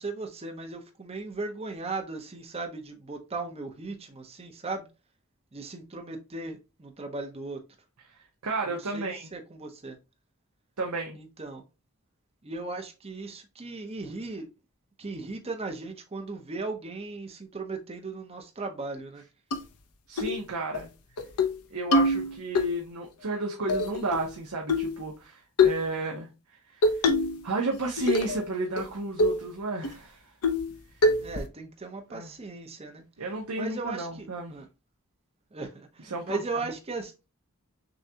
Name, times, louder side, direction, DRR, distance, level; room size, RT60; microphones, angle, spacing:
voice 1, 0.0-4.9 5.5-7.6 8.7-10.0 11.1-11.6 12.4-14.5 15.0-19.2 31.2-33.0 33.6-34.7 35.5-37.1, right 3 dB, 25° right, 0.7 m, -37 dB
voice 2, 8.1-9.3 10.8-11.2 20.1-20.9 21.7-27.1 27.4-30.2 32.1-32.3 33.2-34.5 36.0-36.4, right 3 dB, 75° right, 0.8 m, -32 dB
sound 1, 19.5-19.6 20.2-20.4 20.7-20.8 21.2-21.5 21.9-22.7 23.7-24.3 24.7-25.0 25.6-25.8 26.8-27.4 27.7-28.4 28.8-28.9 29.2-29.4 29.8-29.9 30.4-30.7 31.0-31.5, left 2 dB, 85° left, 0.7 m, -24 dB
6.3 x 2.3 x 2.7 m
head